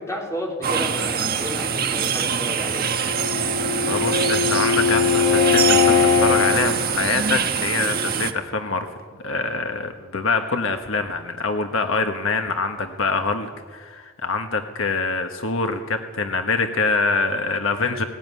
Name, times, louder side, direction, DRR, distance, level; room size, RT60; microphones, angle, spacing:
voice 1, 0.0-2.9, equal, 15° left, 0 dB, 3.6 m, -31 dB
sound 1, 0.6-8.3, right 7 dB, 45° right, 1.3 m, -24 dB
Bowed string instrument, 3.0-6.7, left 7 dB, 85° left, 2.3 m, -20 dB
voice 2, 3.9-8.9 9.2-18.0, left 4 dB, 70° left, 6 dB, 1.5 m, -25 dB
18.5 x 18.0 x 9.5 m, 1.5 s
head